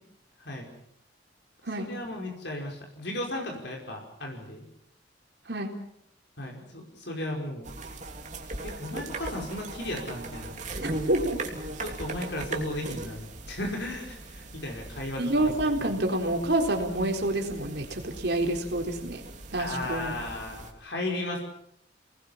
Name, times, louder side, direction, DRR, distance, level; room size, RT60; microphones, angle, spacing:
voice 1, 1.8-4.7 6.4-7.7 8.6-10.8 11.8-15.5 19.6-21.4, left 1 dB, 65° left, 0 dB, 5.4 m, -35 dB
sound 1, 7.6-20.7, right 2 dB, 40° right, 3.2 m, -39 dB
voice 2, 10.8-11.4 15.2-19.2 19.5-20.2, right 1 dB, 60° right, 3 dB, 4.0 m, -28 dB
29.5 x 20.0 x 7.3 m, 0.74 s
head